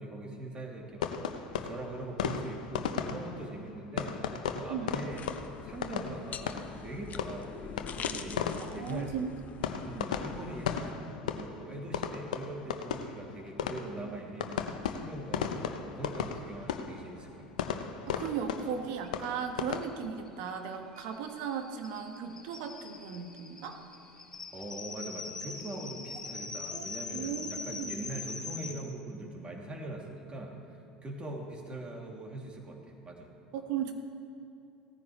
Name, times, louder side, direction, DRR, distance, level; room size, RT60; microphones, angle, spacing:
voice 1, 0.0-5.2 5.6-9.2 9.8-17.5 24.5-33.3, right 1 dB, 25° right, 0 dB, 2.7 m, -42 dB
sound 1, 1.0-19.8, left 7 dB, 75° left, 0.8 m, -37 dB
sound 2, 5.1-10.9, left 7 dB, 40° left, 0.8 m, -45 dB
voice 2, 8.6-9.3 9.6-9.8 18.1-23.8 26.7-26.9 27.1-28.0 33.5-33.9, right 7 dB, 60° right, 5 dB, 1.5 m, -37 dB
sound 3, 19.0-19.1 19.4-19.5 19.7-28.7, left 4 dB, 15° left, 2.8 m, -42 dB
18.0 x 14.5 x 3.2 m, 2.8 s
hypercardioid pair, 75°, 4 cm